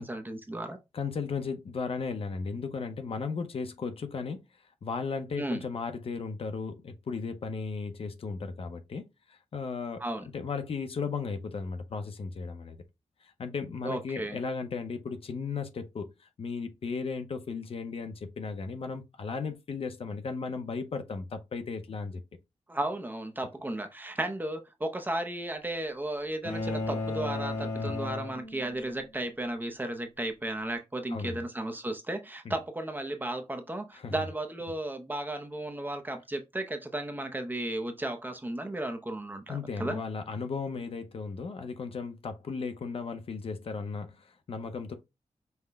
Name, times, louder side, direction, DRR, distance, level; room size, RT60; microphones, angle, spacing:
voice 1, 0.0-0.8 5.4-5.6 10.0-10.3 13.8-14.4 22.7-40.0, right 1 dB, 15° right, 0.5 m, -34 dB
voice 2, 0.9-4.4 4.8-10.0 10.3-12.8 13.2-22.2 27.8-28.0 31.1-31.4 34.0-34.2 39.5-44.9, left 4 dB, 55° left, 0.6 m, -35 dB
sound 1, 26.4-29.0, left 3 dB, 85° left, 1.3 m, -34 dB
5.6 x 2.1 x 3.4 m
wide cardioid pair, 170°, 12 cm